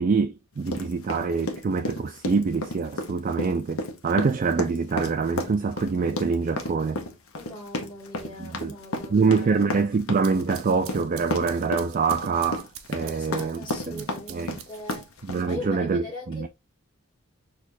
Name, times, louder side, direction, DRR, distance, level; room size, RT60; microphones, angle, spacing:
voice 1, 0.0-7.0 8.4-8.7 9.1-14.6 15.3-16.5, right 4 dB, 40° right, 0.3 m, -25 dB
sound 1, 0.7-15.5, left 2 dB, 80° left, 0.8 m, -32 dB
voice 2, 7.3-9.6 13.0-16.5, left 1 dB, 25° left, 1.3 m, -40 dB
sound 2, 10.0-15.3, right 9 dB, 75° right, 0.6 m, -45 dB
6.2 x 2.4 x 2.6 m
head